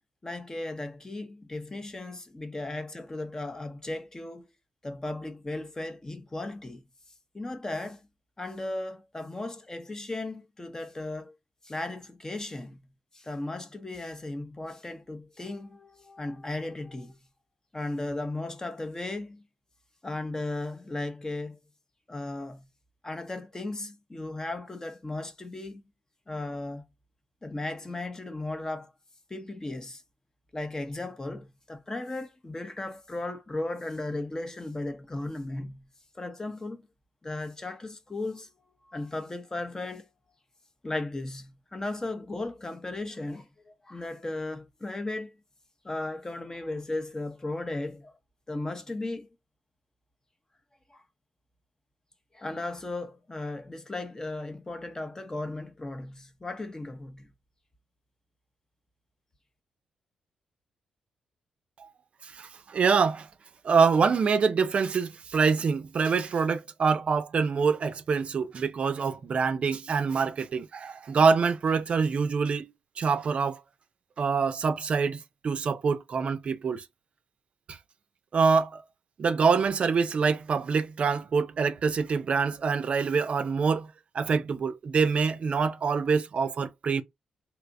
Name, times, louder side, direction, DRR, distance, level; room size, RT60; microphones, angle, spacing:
voice 1, 0.2-4.5 4.8-6.8 7.3-8.1 8.4-11.3 11.6-12.8 13.1-17.2 17.7-19.4 20.0-21.6 22.1-22.7 23.0-25.8 26.3-26.8 27.4-28.9 29.3-30.0 30.5-35.9 36.1-36.9 37.2-38.5 38.9-40.1 40.8-45.4 45.8-48.1 48.5-49.3 50.9-51.0 52.3-57.3, left 2 dB, 25° left, 0.6 m, -36 dB
voice 2, 62.2-63.3 63.6-72.7 73.0-73.6 74.2-76.8 77.7-77.8 78.3-78.8 79.2-83.9 84.1-87.0, right 5 dB, 55° right, 0.4 m, -25 dB
3.3 x 2.9 x 2.5 m
cardioid pair, 65°, 2 cm